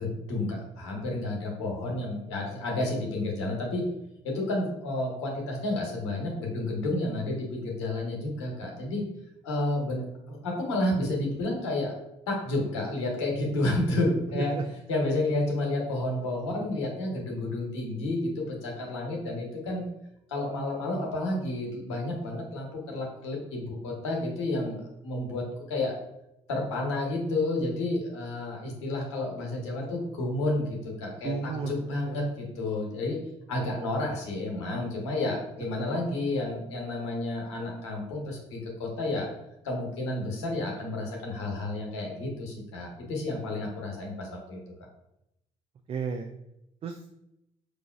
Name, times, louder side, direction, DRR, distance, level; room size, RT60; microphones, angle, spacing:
voice 1, 0.0-3.8 4.2-9.0 9.4-11.9 12.3-14.5 14.9-19.8 20.3-25.9 26.5-33.2 33.5-39.3 39.6-44.6, left 2 dB, 90° left, 0 dB, 0.8 m, -31 dB
voice 2, 31.2-32.2 45.9-46.3 46.8-47.1, right 5 dB, 40° right, 5 dB, 0.4 m, -33 dB
4.8 x 2.4 x 2.3 m, 0.83 s
hypercardioid pair, 55°, 14 cm